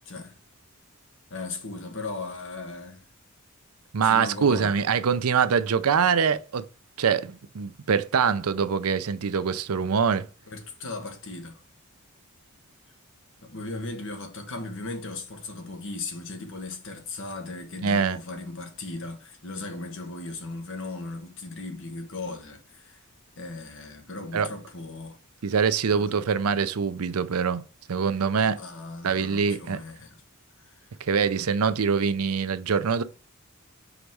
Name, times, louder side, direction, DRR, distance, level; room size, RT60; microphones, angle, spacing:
voice 1, 1.3-3.0 4.0-4.7 10.5-11.6 13.4-23.0 23.4-25.2 25.9-26.1 28.4-30.2 30.6-30.9, left 3 dB, 60° left, 1.3 m, -37 dB
voice 2, 3.9-6.7 7.0-10.3 17.8-18.2 24.3-24.5 25.4-27.6 27.9-28.6 29.0-29.8 31.0-33.0, right 6 dB, 85° right, 0.6 m, -24 dB
5.1 x 4.0 x 4.7 m
head